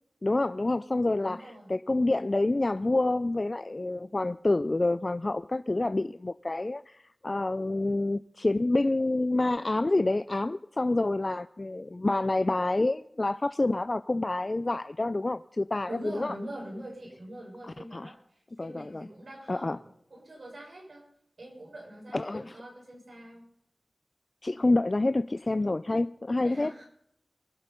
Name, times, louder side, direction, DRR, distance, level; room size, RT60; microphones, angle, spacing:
voice 1, 0.2-16.3 17.9-18.1 18.6-19.0 19.5-19.8 22.1-22.6 24.4-26.7, left 2 dB, 45° left, 13 dB, 0.4 m, -28 dB
voice 2, 1.2-1.7 15.8-21.1 21.4-23.4 26.4-26.9, right 1 dB, 75° right, -2 dB, 6.2 m, -44 dB
23.5 x 8.1 x 5.3 m, 0.72 s
wide cardioid pair, 45°, 0 cm